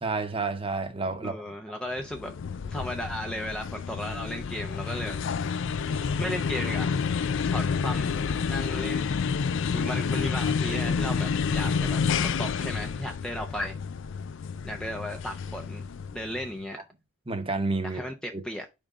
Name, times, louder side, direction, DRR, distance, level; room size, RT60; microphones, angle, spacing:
voice 1, 0.0-1.4 17.3-18.0 18.3-18.4, right 3 dB, 25° right, 1.0 m, -29 dB
voice 2, 1.2-2.4 2.6-5.2 5.8-7.0 7.4-8.1 8.5-9.3 9.7-13.8 14.6-15.9 16.1-16.8 17.8-18.6, equal, 5° left, 0.5 m, -35 dB
sound 1, 2.0-16.5, left 6 dB, 65° left, 0.4 m, -29 dB
5.1 x 3.6 x 5.4 m
head